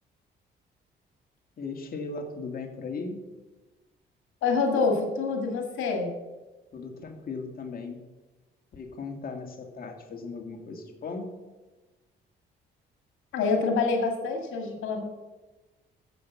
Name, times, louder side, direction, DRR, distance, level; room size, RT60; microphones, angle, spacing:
voice 1, 1.6-3.2 6.7-8.0 8.7-11.3, left 4 dB, 50° left, 3 dB, 2.0 m, -37 dB
voice 2, 4.4-6.1 13.3-15.0, left 4 dB, 90° left, 3 dB, 1.9 m, -26 dB
10.5 x 7.7 x 7.1 m, 1.2 s
cardioid pair, 90°, 20 cm